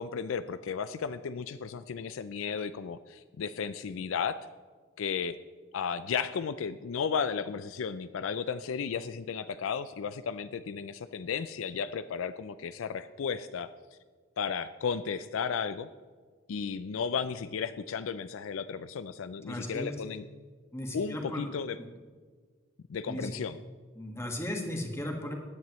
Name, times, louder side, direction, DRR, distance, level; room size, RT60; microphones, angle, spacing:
voice 1, 0.0-4.4 5.0-5.4 5.7-13.7 14.4-15.9 16.5-20.3 20.9-21.8 22.9-23.6, left 6 dB, 70° left, 13 dB, 0.4 m, -34 dB
voice 2, 19.5-19.9 20.7-21.5 23.1-23.4 23.9-25.3, left 1 dB, 15° left, 1 dB, 1.7 m, -36 dB
16.5 x 10.5 x 3.1 m, 1.5 s
head